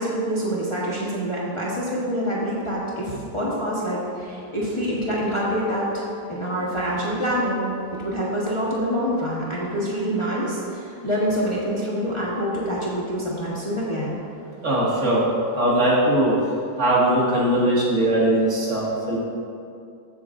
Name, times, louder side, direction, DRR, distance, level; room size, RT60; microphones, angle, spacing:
voice 1, 0.0-14.2, equal, 20° left, -6 dB, 1.2 m, -26 dB
voice 2, 14.6-15.2 15.5-16.3 16.8-19.2, right 1 dB, 50° right, -6 dB, 2.3 m, -20 dB
14.0 x 7.7 x 2.6 m, 2.5 s
omnidirectional pair, 1.7 m